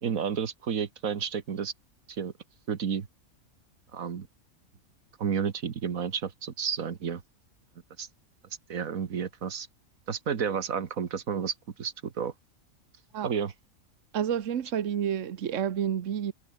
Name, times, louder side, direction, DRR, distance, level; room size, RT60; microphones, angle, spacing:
voice 1, 0.0-1.7 2.1-2.3 2.7-3.1 3.9-4.3 5.2-7.2 8.0-8.1 8.7-9.7 10.1-12.3 13.2-13.5, right 7 dB, 85° right, 1.9 m, -31 dB
voice 2, 14.1-16.3, right 9 dB, 65° right, 1.3 m, -29 dB
omnidirectional pair, 1.4 m